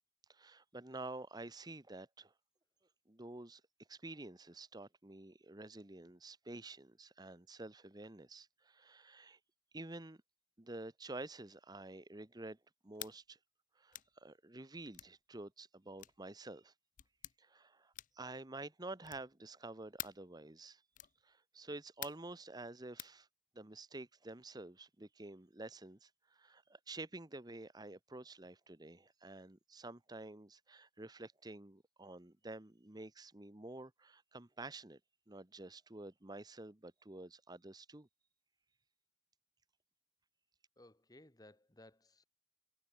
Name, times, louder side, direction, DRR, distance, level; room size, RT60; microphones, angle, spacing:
voice 1, 0.3-2.3 3.1-3.6 3.9-9.4 9.7-10.2 10.6-12.6 12.8-13.4 13.8-16.7 17.4-20.8 21.2-23.3 23.5-35.0 35.3-38.1, right 2 dB, 20° right, 1.1 m, -50 dB
sound 1, 12.9-13.2 13.9-14.1 14.9-15.1 16.0-16.2 17.0-17.4 17.9-18.3 19.0-19.3 20.0-20.3 20.9-21.2 22.0-22.3 23.0-23.2, left 14 dB, 45° left, 0.5 m, -48 dB
voice 2, 40.8-42.2, left 1 dB, 20° left, 1.6 m, -60 dB
head